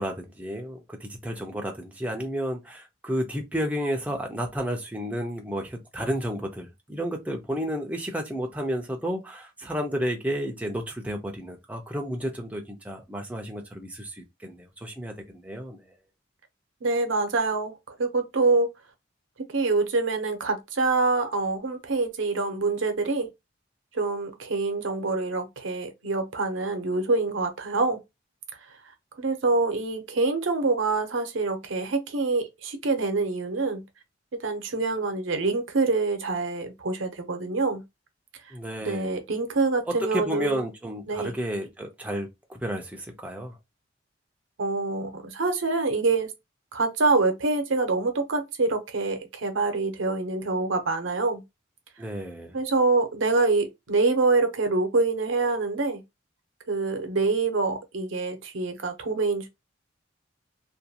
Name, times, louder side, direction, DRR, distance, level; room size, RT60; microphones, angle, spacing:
voice 1, 0.0-15.9 38.5-39.1 39.9-43.6 52.0-52.6, equal, 10° right, 0.4 m, -32 dB
voice 2, 16.8-18.7 19.5-23.3 23.9-28.0 29.2-33.8 34.4-37.8 38.8-40.6 41.1-41.3 44.6-46.3 46.7-51.4 52.5-56.0 56.7-59.5, right 3 dB, 85° right, 0.7 m, -25 dB
2.5 x 2.2 x 2.7 m
head